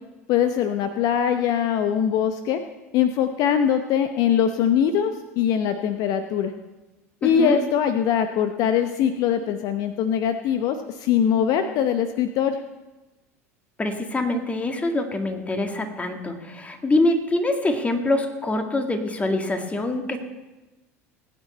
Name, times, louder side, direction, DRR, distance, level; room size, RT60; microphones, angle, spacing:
voice 1, 0.3-2.6 2.9-6.5 7.2-12.6, left 8 dB, 50° left, 8 dB, 0.8 m, -22 dB
voice 2, 7.2-7.6 13.8-20.2, left 2 dB, 15° left, 4 dB, 2.0 m, -24 dB
19.5 x 9.2 x 4.3 m, 1.1 s
figure-of-eight pair, 75°, 8 cm